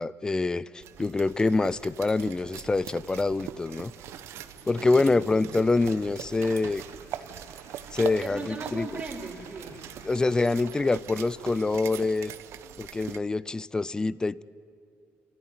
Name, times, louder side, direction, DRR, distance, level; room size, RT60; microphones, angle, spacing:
voice 1, 0.0-3.9 4.7-6.8 7.9-8.9 10.0-12.3 12.8-14.4, left 3 dB, 15° left, 20 dB, 0.5 m, -26 dB
sound 1, 0.8-13.2, right 10 dB, 75° right, 1.0 m, -42 dB
sound 2, 1.5-11.7, left 4 dB, 75° left, 4.4 m, -59 dB
voice 2, 4.8-5.5 8.2-9.9, right 3 dB, 25° right, 0 dB, 3.7 m, -39 dB
30.0 x 14.5 x 9.7 m, 2.4 s
cardioid pair, 125°, 5 cm